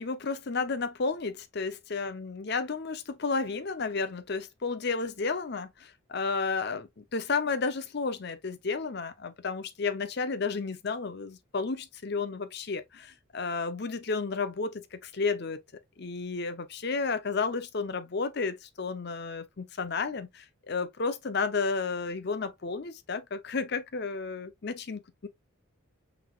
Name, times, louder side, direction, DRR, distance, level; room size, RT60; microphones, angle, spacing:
voice 1, 0.0-15.6 16.0-25.3, left 4 dB, 50° left, 0.6 m, -32 dB
5.9 x 3.4 x 2.3 m
head